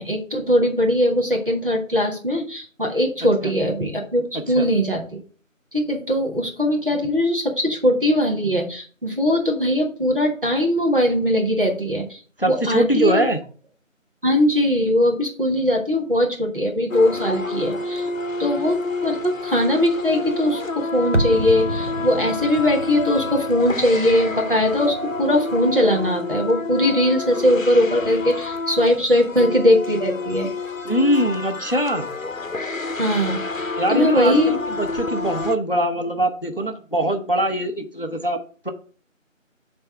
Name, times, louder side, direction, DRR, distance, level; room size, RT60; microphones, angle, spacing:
voice 1, 0.0-5.2 5.7-13.2 14.2-18.1 18.4-30.5 33.0-34.6, left 1 dB, 40° right, 0 dB, 1.6 m, -20 dB
voice 2, 4.3-4.7 12.4-13.4 30.8-32.1 33.8-38.4 38.6-38.7, right 1 dB, 45° left, 6 dB, 0.6 m, -22 dB
sound 1, 16.9-35.6, left 3 dB, 75° left, 0.8 m, -29 dB
sound 2, 21.1-26.1 26.3-26.4, right 1 dB, 60° right, 0.8 m, -30 dB
6.7 x 3.5 x 5.8 m, 0.41 s
figure-of-eight pair, 175°, 40 cm